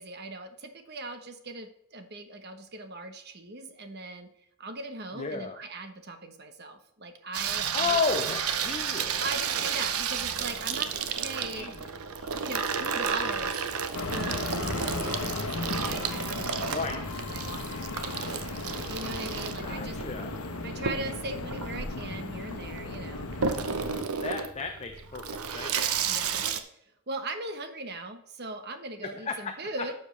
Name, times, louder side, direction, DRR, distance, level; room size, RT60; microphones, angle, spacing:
voice 1, 0.0-4.3 4.6-8.0 9.2-11.7 12.3-13.6 14.0-20.0 20.6-23.3 26.1-26.4 27.1-29.9, right 2 dB, 45° right, 8 dB, 1.1 m, -39 dB
voice 2, 5.1-5.6 7.7-9.3 11.5-11.8 12.2-12.3 16.6-17.0 19.6-20.4 24.2-26.0 29.0-29.5, left 5 dB, 30° left, 4 dB, 0.7 m, -33 dB
Water tap faucet / Sink (filling or washing), 7.3-26.6, right 7 dB, 80° right, 0.8 m, -32 dB
sound 1, 13.9-24.0, left 2 dB, 80° left, 1.1 m, -35 dB
12.0 x 7.1 x 3.3 m, 0.75 s
head